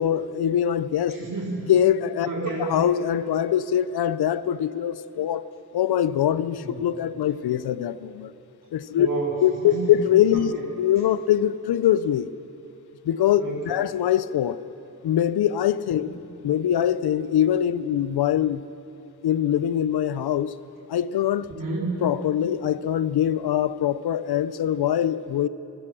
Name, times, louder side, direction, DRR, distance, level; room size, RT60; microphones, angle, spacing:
voice 1, 0.0-1.2 1.7-2.3 2.6-5.4 5.7-8.3 8.7-9.1 9.4-12.3 13.0-14.6 15.0-16.2 16.4-18.6 19.2-20.5 20.9-21.5 22.0-25.5, left 10 dB, 80° left, 16 dB, 0.7 m, -23 dB
voice 2, 1.2-1.6 2.2-2.7 6.6-6.7 8.9-9.3 9.6-9.9 13.4-13.7 21.5-22.0, right 2 dB, 60° right, -4 dB, 4.0 m, -30 dB
25.5 x 16.5 x 6.2 m, 2.9 s
supercardioid pair, 45°, 37 cm